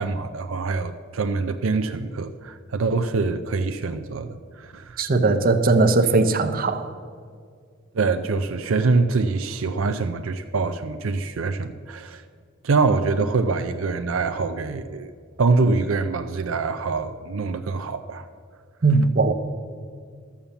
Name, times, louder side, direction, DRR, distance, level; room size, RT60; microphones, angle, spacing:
voice 1, 0.0-5.0 7.9-12.2 12.6-15.1 15.4-18.3, right 4 dB, 80° right, 8 dB, 0.5 m, -24 dB
voice 2, 5.0-6.9 18.8-19.3, right 3 dB, 45° right, 9 dB, 0.8 m, -19 dB
13.0 x 7.2 x 7.0 m, 2.1 s
head